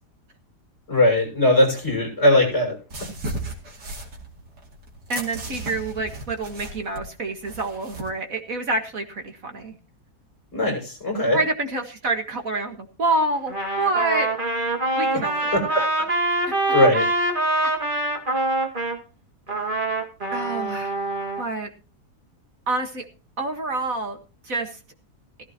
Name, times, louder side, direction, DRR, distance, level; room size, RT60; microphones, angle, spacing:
voice 1, 0.9-2.8 10.5-11.4 15.5-15.6 16.7-17.1, left 1 dB, 40° left, 1 dB, 6.7 m, -19 dB
sound 1, 2.9-8.1, right 1 dB, 85° right, 3.3 m, -35 dB
voice 2, 5.1-9.7 11.3-14.3 14.9-15.9 20.3-20.9 21.4-21.7 22.7-23.0 23.4-24.2 24.4-24.8, right 2 dB, 55° right, 5 dB, 2.0 m, -27 dB
Trumpet, 13.5-19.0 19.5-21.4, right 2 dB, 30° right, 2.1 m, -24 dB
16.0 x 14.5 x 2.9 m, 0.35 s
omnidirectional pair, 1.8 m